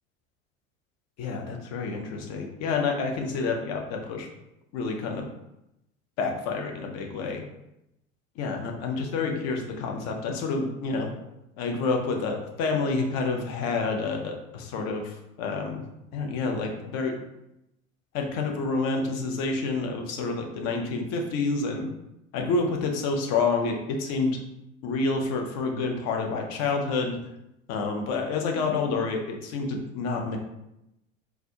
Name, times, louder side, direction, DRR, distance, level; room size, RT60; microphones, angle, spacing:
voice 1, 1.2-4.3 4.7-5.3 6.2-7.4 8.4-11.1 11.6-15.8 16.1-17.2 18.1-21.9 22.3-24.4 24.8-27.2 27.7-30.4, left 4 dB, 40° left, 2 dB, 0.7 m, -28 dB
4.2 x 2.3 x 2.7 m, 0.87 s
figure-of-eight pair, 75°, 40 cm